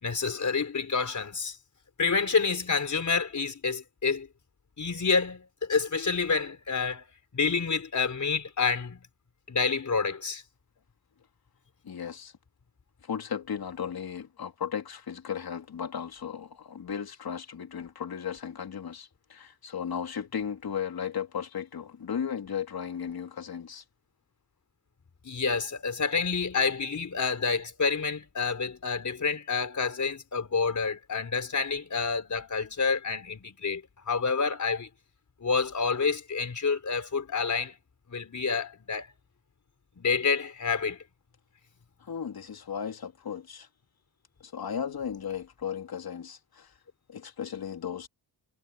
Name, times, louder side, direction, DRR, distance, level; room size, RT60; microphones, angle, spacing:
voice 1, 0.0-1.6 2.0-4.3 4.8-7.0 7.3-9.0 9.5-10.4 25.2-34.9 35.4-37.7 38.1-39.1 40.0-41.0, left 5 dB, 45° left, 4.9 m, -28 dB
voice 2, 11.8-12.3 13.0-23.8 42.0-43.7 44.4-46.7 47.1-48.1, left 7 dB, 60° left, 3.1 m, -35 dB
wide cardioid pair, 105°, 41 cm